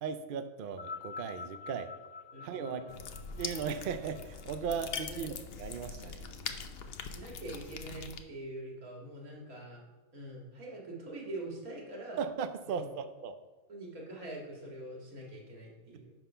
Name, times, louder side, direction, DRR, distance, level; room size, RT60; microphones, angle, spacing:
voice 1, 0.0-1.9 2.4-3.0 3.4-6.3 12.2-13.4, right 6 dB, 60° right, 9 dB, 0.5 m, -37 dB
sound 1, 0.7-5.2 6.1-6.2, left 5 dB, 85° left, 1.4 m, -47 dB
voice 2, 2.3-2.9 3.3-3.5 5.1-5.3 7.0-9.8 10.1-12.2 12.7-12.9 13.7-16.1, right 2 dB, 80° right, -2 dB, 2.4 m, -44 dB
sound 2, 2.9-8.2, left 6 dB, 55° left, 0.7 m, -42 dB
10.5 x 4.0 x 5.6 m, 1.2 s
omnidirectional pair, 1.5 m